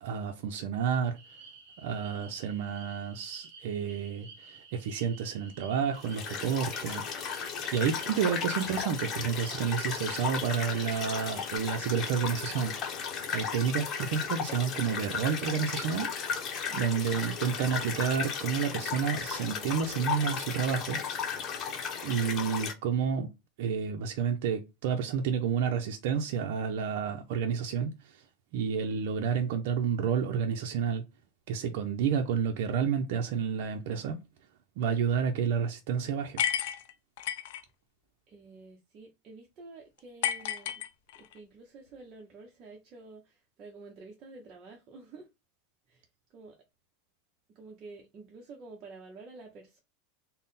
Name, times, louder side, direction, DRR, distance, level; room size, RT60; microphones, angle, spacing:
voice 1, 0.0-1.2 1.8-7.1 7.7-12.7 13.3-16.1 16.7-21.0 22.0-23.3 23.6-27.9 28.5-31.0 31.5-34.2 34.8-36.4, right 7 dB, 65° right, 0.5 m, -30 dB
sound 1, 1.1-11.6, right 4 dB, 50° right, 1.5 m, -52 dB
sound 2, 6.0-22.7, left 6 dB, 30° left, 0.9 m, -35 dB
voice 2, 16.7-17.0 38.3-40.8 41.1-45.3 45.9-46.6 47.5-49.8, right 3 dB, 30° right, 0.7 m, -50 dB
sound 3, 36.4-37.6 40.2-41.4, left 10 dB, 70° left, 0.4 m, -31 dB
3.6 x 2.1 x 4.0 m
supercardioid pair, 145°, 0 cm